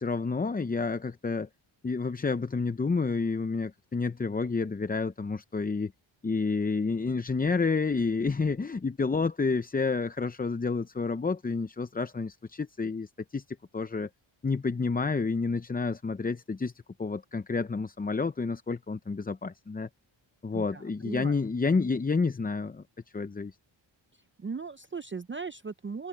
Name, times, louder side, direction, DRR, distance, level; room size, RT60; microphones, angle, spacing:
voice 1, 0.0-1.5 1.8-5.9 6.2-13.4 13.7-14.1 14.4-16.7 17.0-19.9 20.4-22.8 23.1-23.6, left 4 dB, 20° left, 0.6 m, -29 dB
voice 2, 20.5-21.4 24.4-26.1, right 5 dB, 25° right, 0.5 m, -38 dB
wide cardioid pair, 90°, 48 cm